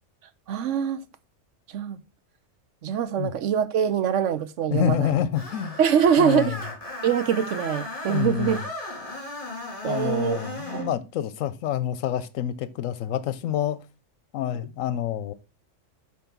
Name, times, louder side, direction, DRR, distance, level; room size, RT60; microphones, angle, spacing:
voice 1, 0.5-1.0 1.7-2.0 2.8-5.2 5.8-6.6 7.0-8.6 9.8-10.4 10.7-10.9, right 8 dB, 70° right, 1.1 m, -23 dB
voice 2, 4.7-5.8 6.2-6.6 8.1-8.6 9.9-13.8 14.3-15.3, left 10 dB, 85° left, 1.0 m, -27 dB
Screech, 5.3-10.9, left 2 dB, 40° left, 3.2 m, -36 dB
8.4 x 3.3 x 6.0 m
omnidirectional pair, 1.3 m